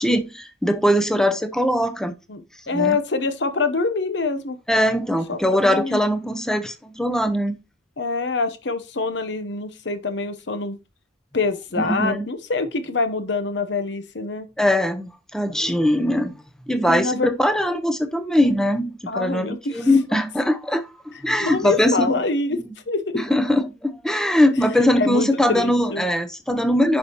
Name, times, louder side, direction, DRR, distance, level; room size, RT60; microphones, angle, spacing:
voice 1, 0.0-2.1 2.7-3.0 4.7-7.6 11.8-12.2 14.6-16.4 16.7-22.1 22.5-22.7 23.1-27.0, left 1 dB, 5° left, 0.7 m, -21 dB
voice 2, 2.3-4.6 5.3-6.0 8.0-10.8 11.3-14.5 16.9-17.3 19.1-19.9 21.4-22.6 22.9-23.2 25.0-26.1, left 3 dB, 65° left, 0.9 m, -25 dB
9.6 x 5.4 x 3.0 m
head